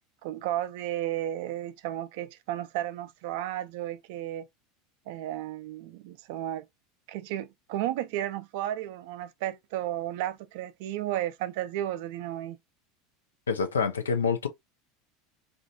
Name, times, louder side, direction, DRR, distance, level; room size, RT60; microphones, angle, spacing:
voice 1, 0.2-4.5 5.1-6.7 7.1-12.6, right 13 dB, 60° right, 0.3 m, -33 dB
voice 2, 13.5-14.5, left 5 dB, 85° left, 0.4 m, -26 dB
2.4 x 2.2 x 2.6 m
hypercardioid pair, 80°, 0 cm